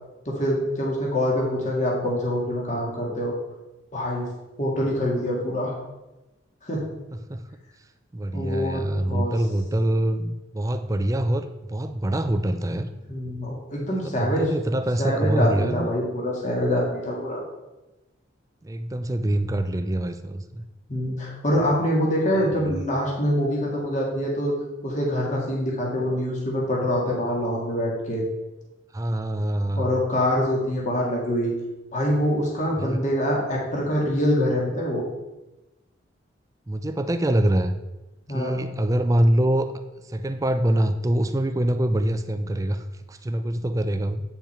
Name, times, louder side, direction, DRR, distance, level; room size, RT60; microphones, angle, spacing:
voice 1, 0.3-3.3 3.9-4.3 4.6-5.7 6.6-6.8 8.3-9.3 13.1-14.5 15.0-17.4 20.9-24.5 24.8-28.2 29.8-31.5 31.9-35.0 38.3-38.7, equal, 40° left, -2 dB, 2.0 m, -25 dB
voice 2, 8.1-12.9 13.9-15.9 18.6-20.7 22.6-22.8 28.9-29.9 32.8-33.0 36.7-37.7 38.3-39.7 40.0-44.2, right 1 dB, 15° right, 9 dB, 0.4 m, -25 dB
8.7 x 5.7 x 4.3 m, 1.0 s
head